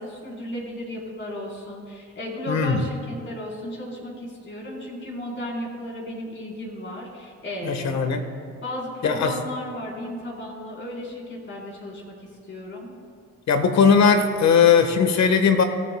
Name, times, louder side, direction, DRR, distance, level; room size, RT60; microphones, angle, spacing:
voice 1, 0.0-8.1 8.6-12.9, left 1 dB, 40° left, -3 dB, 4.3 m, -34 dB
voice 2, 2.5-2.8 7.6-8.3 9.0-9.3 13.5-15.6, left 6 dB, 65° left, 7 dB, 1.6 m, -18 dB
25.0 x 14.0 x 2.3 m, 2.1 s
cardioid pair, 90°, 30 cm